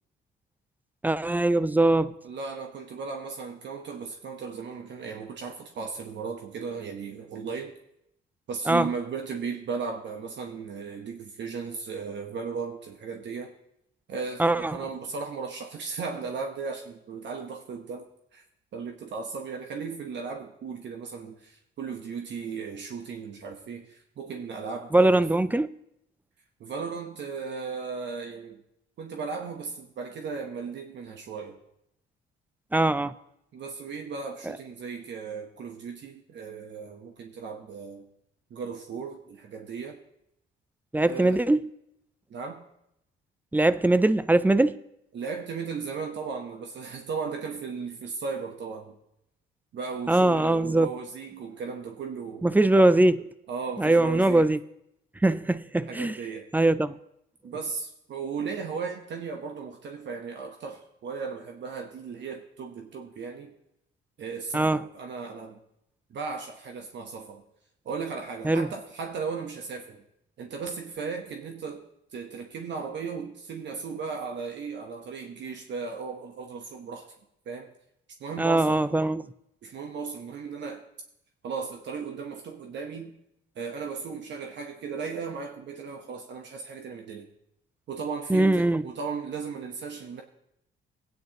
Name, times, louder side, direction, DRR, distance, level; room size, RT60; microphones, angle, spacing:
voice 1, 1.0-2.1 8.7-8.9 14.4-14.8 24.9-25.8 32.7-33.1 34.4-34.6 40.9-41.7 43.5-44.8 50.1-50.9 52.4-53.3 53.8-54.6 55.2-56.2 56.5-57.0 64.5-64.9 68.4-68.7 78.4-79.3 88.3-88.8, right 2 dB, 10° right, 0.4 m, -22 dB
voice 2, 2.2-7.7 8.5-13.5 14.1-18.4 18.7-25.3 26.6-28.6 29.0-31.6 33.5-38.0 38.5-40.0 41.0-41.4 42.3-42.6 45.1-49.0 49.7-52.5 53.5-54.5 55.8-56.5 57.4-63.5 64.2-65.6 66.1-67.4 67.8-70.0 70.4-71.8 72.1-77.0 77.4-77.7 78.2-78.8 79.6-80.8 81.4-83.1 83.5-87.3 87.9-90.2, right 5 dB, 65° right, 1.1 m, -36 dB
17.0 x 9.2 x 3.0 m
cardioid pair, 90°, 20 cm